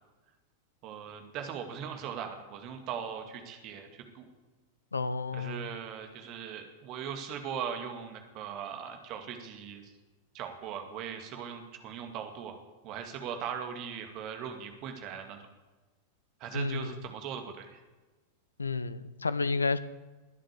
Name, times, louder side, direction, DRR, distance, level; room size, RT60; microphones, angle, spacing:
voice 1, 0.8-4.3 5.3-9.9 10.3-15.4 16.4-17.8, right 7 dB, 40° right, 5 dB, 2.3 m, -39 dB
voice 2, 4.9-5.7 16.5-16.9 18.6-19.8, left 4 dB, 75° left, 15 dB, 0.8 m, -31 dB
20.5 x 7.6 x 8.3 m, 1.2 s
figure-of-eight pair, 90°, 0 cm